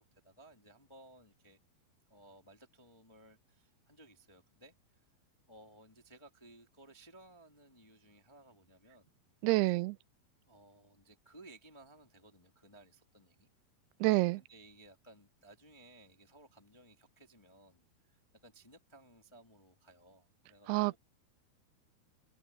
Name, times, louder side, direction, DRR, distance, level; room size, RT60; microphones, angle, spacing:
voice 1, 0.0-1.6 2.1-5.0 5.5-9.1 10.4-13.5 14.4-21.0, right 1 dB, 15° left, 1.0 m, -59 dB
voice 2, 9.4-10.0 14.0-14.4 20.7-21.0, right 21 dB, 85° right, 2.6 m, -28 dB
omnidirectional pair, 4.5 m